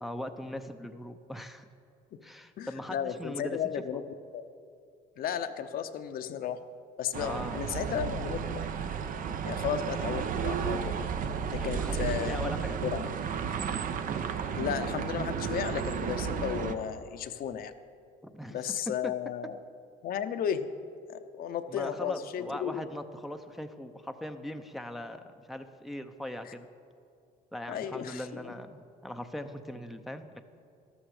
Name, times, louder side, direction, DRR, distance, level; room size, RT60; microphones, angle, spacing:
voice 1, 0.0-1.7 2.2-4.0 7.2-7.9 11.6-12.8 18.2-18.7 19.0-19.1 21.7-26.7 27.5-30.4, left 1 dB, ahead, 6 dB, 0.6 m, -40 dB
voice 2, 2.6-4.0 4.3-4.4 5.2-6.6 7.0-8.6 9.5-11.0 11.5-12.4 12.8-13.1 14.5-17.7 18.5-19.6 20.0-20.7 21.1-22.9 26.4-26.5 27.7-28.5, left 9 dB, 60° left, 9 dB, 0.7 m, -34 dB
sound 1, 7.1-16.7, right 7 dB, 55° right, 0.8 m, -33 dB
12.5 x 12.5 x 4.9 m, 2.5 s
cardioid pair, 110°, 17 cm